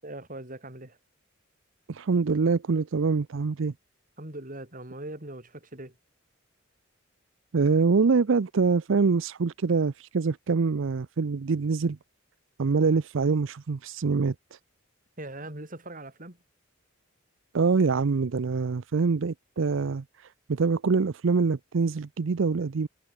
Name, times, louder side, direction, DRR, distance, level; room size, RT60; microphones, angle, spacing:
voice 1, 0.0-1.0 4.2-5.9 15.2-16.4, right 1 dB, 40° right, 4.9 m, -40 dB
voice 2, 1.9-3.7 7.5-12.0 12.6-14.6 17.5-22.9, right 4 dB, 70° right, 0.5 m, -25 dB
head